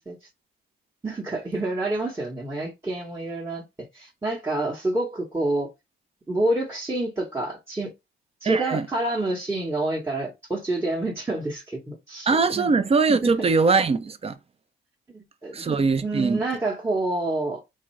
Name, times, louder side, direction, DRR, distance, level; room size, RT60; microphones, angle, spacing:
voice 1, 1.0-5.7 6.3-7.9 8.4-12.7 13.2-13.5 15.1-15.6 16.0-17.7, right 2 dB, 10° right, 1.0 m, -28 dB
voice 2, 8.4-8.9 12.3-14.4 15.5-16.4, right 4 dB, 30° right, 0.6 m, -21 dB
3.7 x 2.6 x 3.1 m
cardioid pair, 90°, 20 cm